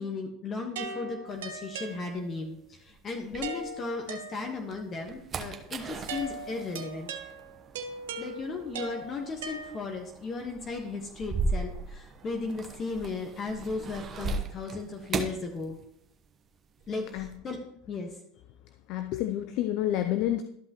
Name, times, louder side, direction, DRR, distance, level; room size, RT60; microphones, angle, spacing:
voice 1, 0.0-7.1 8.2-15.8 16.9-17.6 17.9-18.1, left 4 dB, 35° left, 3 dB, 1.3 m, -36 dB
sound 1, 0.8-2.5 3.4-4.8 6.1-10.2, right 4 dB, 80° right, 1.0 m, -40 dB
sound 2, 1.3-4.1 4.5-16.3 16.5-17.4, right 3 dB, 35° right, 1.0 m, -38 dB
voice 2, 18.9-20.4, left 12 dB, 60° left, 8 dB, 0.5 m, -29 dB
12.5 x 5.6 x 3.0 m, 0.74 s
hypercardioid pair, 95°, 0 cm